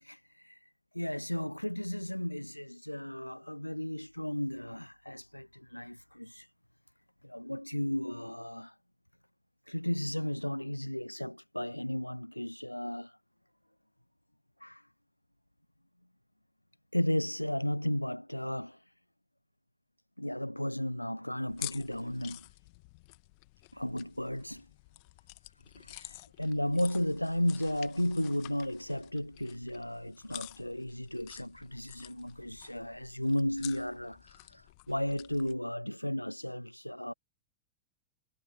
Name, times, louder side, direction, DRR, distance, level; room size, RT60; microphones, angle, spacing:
voice 1, 0.0-0.6 0.9-6.5 7.2-8.7 9.7-13.2 14.6-14.8 16.9-18.8 20.2-22.4 23.7-24.7 25.7-37.1, left 1 dB, 90° left, 0.9 m, -34 dB
sound 1, 21.5-35.6, left 31 dB, 45° left, 1.6 m, -50 dB
figure-of-eight pair, 90°, 0 cm